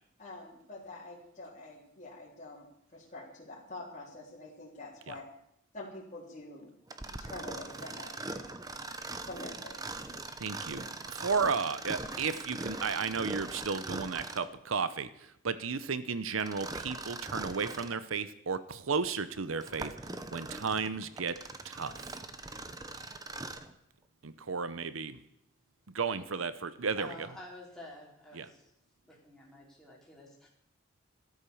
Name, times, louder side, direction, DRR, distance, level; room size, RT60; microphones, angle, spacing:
voice 1, 0.2-5.2 5.7-8.1 8.5-8.6 9.2-10.2, left 2 dB, 35° left, -7 dB, 3.6 m, -46 dB
Mechanisms, 6.9-14.6 16.4-18.0 18.6-18.7 19.4-23.7, right 2 dB, 20° right, 1.0 m, -41 dB
voice 2, 10.4-19.9 20.3-21.4 21.6-22.2 24.2-25.2 25.9-27.3 28.3-28.5, right 5 dB, 85° right, 14 dB, 0.8 m, -34 dB
voice 3, 27.0-28.6 29.0-30.5, left 1 dB, 5° left, -4 dB, 4.4 m, -50 dB
13.5 x 13.0 x 7.1 m, 0.76 s
head